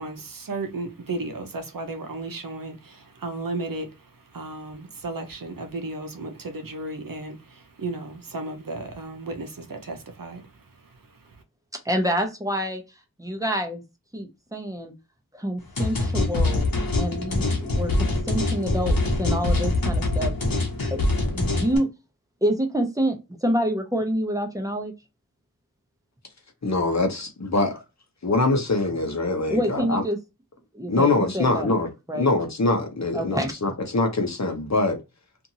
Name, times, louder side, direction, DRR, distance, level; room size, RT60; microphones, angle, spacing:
voice 1, 0.0-3.9 4.3-10.4, right 2 dB, 70° right, 0.7 m, -34 dB
voice 2, 11.7-12.8 13.2-13.8 14.1-14.9 15.3-16.7 17.0-20.3 20.9-21.0 21.3-21.9 22.4-24.9 29.5-30.2 30.7-31.7 32.1-32.3 33.1-33.5, equal, 10° right, 0.8 m, -27 dB
sound 1, 15.8-21.8, left 2 dB, 75° left, 1.1 m, -24 dB
voice 3, 26.6-27.7 28.2-30.0 30.9-31.9 32.1-35.0, left 2 dB, 50° left, 0.8 m, -23 dB
2.7 x 2.6 x 2.7 m
wide cardioid pair, 55°, 35 cm